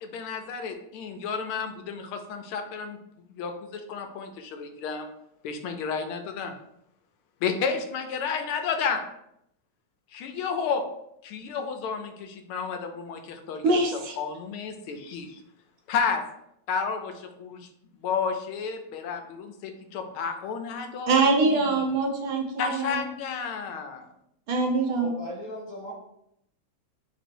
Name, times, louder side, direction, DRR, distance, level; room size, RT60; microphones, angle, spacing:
voice 1, 0.0-3.0 3.3-5.1 5.4-6.5 7.4-9.0 10.1-10.8 11.2-13.8 14.2-15.4 15.9-16.2 16.7-17.7 17.9-22.0 22.6-24.1, left 6 dB, 85° left, 6 dB, 1.5 m, -31 dB
voice 2, 13.6-14.2 21.1-23.0 24.5-25.1, right 3 dB, 75° right, 1 dB, 1.7 m, -24 dB
voice 3, 24.9-25.9, left 1 dB, 45° left, -2 dB, 1.5 m, -37 dB
3.9 x 3.0 x 4.5 m, 0.77 s
omnidirectional pair, 2.3 m